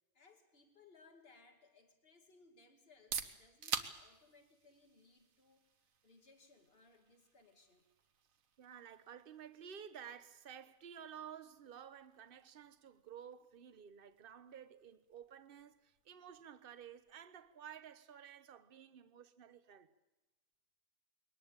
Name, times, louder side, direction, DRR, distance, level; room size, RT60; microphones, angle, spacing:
voice 1, 0.1-5.6 6.0-7.9, left 3 dB, 40° left, 2.6 m, -65 dB
sound 1, 2.8-18.5, right 6 dB, 70° right, 1.6 m, -51 dB
voice 2, 8.6-19.9, right 8 dB, 45° right, 1.1 m, -53 dB
22.0 x 19.0 x 8.8 m
omnidirectional pair, 1.5 m